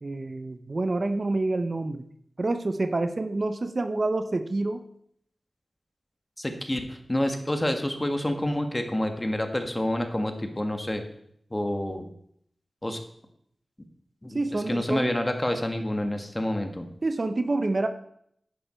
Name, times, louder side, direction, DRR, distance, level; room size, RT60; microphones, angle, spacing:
voice 1, 0.0-2.0 2.4-4.8 14.3-15.1 17.0-17.9, right 2 dB, 50° right, 9 dB, 0.8 m, -27 dB
voice 2, 6.4-11.0 11.5-12.1 12.8-13.0 14.2-16.9, left 1 dB, 20° left, 5 dB, 1.7 m, -28 dB
10.5 x 10.0 x 4.4 m, 0.69 s
wide cardioid pair, 60°, 0 cm